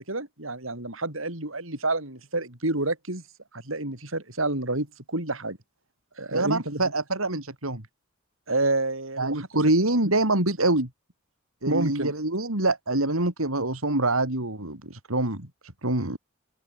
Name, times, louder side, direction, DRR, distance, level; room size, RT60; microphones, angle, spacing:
voice 1, 0.0-3.2 3.5-5.6 6.2-6.8 8.5-9.5 10.0-10.1 11.7-12.1, right 2 dB, 70° right, 5.5 m, -29 dB
voice 2, 6.3-7.8 9.2-10.9 11.6-15.5 15.8-16.2, right 2 dB, 90° right, 4.7 m, -25 dB
open air
head